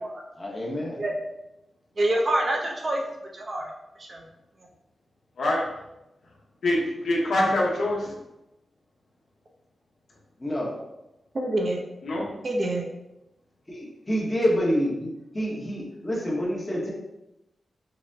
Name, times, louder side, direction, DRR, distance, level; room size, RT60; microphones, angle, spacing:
voice 1, 0.4-1.0 10.4-10.8 13.7-16.9, equal, 15° left, -3 dB, 0.8 m, -27 dB
voice 2, 2.0-3.0 3.3-3.7 4.0-4.2 11.3-11.8 12.4-12.8, right 1 dB, 35° right, 0 dB, 0.5 m, -26 dB
voice 3, 6.6-8.1 12.0-12.3, left 1 dB, 65° left, -3 dB, 0.9 m, -24 dB
5.3 x 2.1 x 2.6 m, 0.91 s
wide cardioid pair, 175°, 0 cm